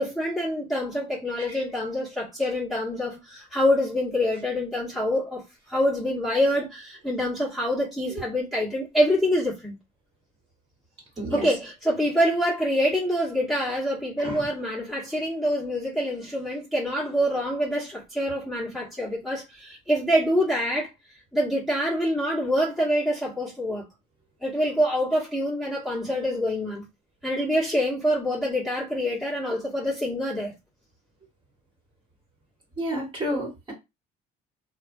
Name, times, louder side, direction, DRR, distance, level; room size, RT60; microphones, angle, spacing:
voice 1, 0.0-9.8 11.3-20.9 21.3-23.8 24.4-26.9 27.2-30.5, equal, ahead, 1.2 m, -26 dB
voice 2, 32.8-33.7, equal, 30° right, 1.5 m, -30 dB
2.7 x 2.3 x 2.6 m
cardioid pair, 110°, 17 cm